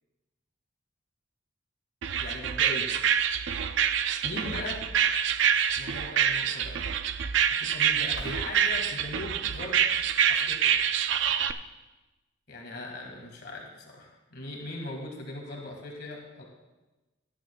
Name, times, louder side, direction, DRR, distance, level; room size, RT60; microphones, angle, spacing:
sound 1, 2.0-11.5, right 8 dB, 65° right, 0.4 m, -26 dB
voice 1, 2.2-2.9 4.2-4.8 5.8-6.8 7.6-9.8 10.3-10.7 12.5-16.4, left 2 dB, 50° left, 0 dB, 1.8 m, -39 dB
sound 2, 8.1-10.9, left 2 dB, 75° left, 2.7 m, -50 dB
18.0 x 11.0 x 2.3 m, 1.1 s
head